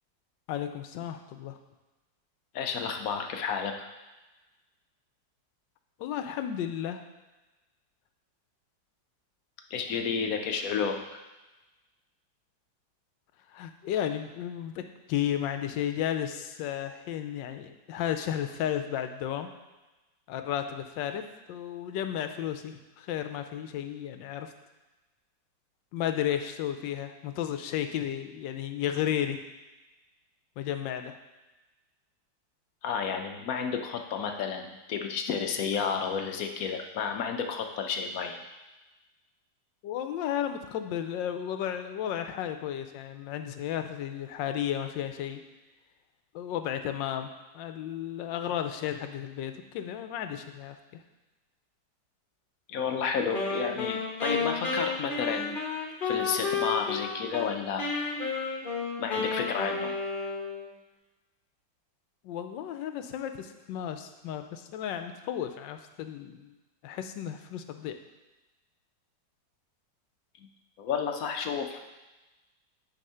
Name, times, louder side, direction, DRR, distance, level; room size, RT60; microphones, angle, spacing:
voice 1, 0.5-1.6 6.0-7.0 13.5-19.5 20.3-24.5 25.9-29.4 30.6-31.2 39.8-45.4 46.3-47.3 47.5-51.0 62.2-66.5 66.8-68.0, left 10 dB, 85° left, 8 dB, 1.3 m, -33 dB
voice 2, 2.5-3.9 9.7-11.2 32.8-38.4 52.7-55.6 56.0-57.9 59.0-59.9 70.8-71.8, left 6 dB, 65° left, 5 dB, 0.9 m, -31 dB
Wind instrument woodwind instrument, 53.3-57.5 57.8-60.7, left 4 dB, 35° left, 1.1 m, -31 dB
9.1 x 3.6 x 5.5 m, 1.1 s
omnidirectional pair, 2.0 m